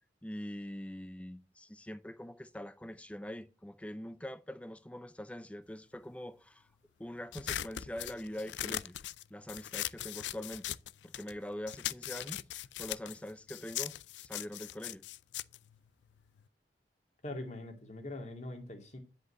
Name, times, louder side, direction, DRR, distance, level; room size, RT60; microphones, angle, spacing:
voice 1, 0.2-6.7 7.0-9.0 9.3-10.8 11.0-15.0, left 1 dB, 5° left, 0.5 m, -44 dB
sound 1, 7.3-11.4 11.7-16.5, left 13 dB, 75° left, 0.4 m, -40 dB
voice 2, 17.2-19.0, left 2 dB, 40° left, 2.2 m, -42 dB
10.5 x 5.3 x 6.4 m
head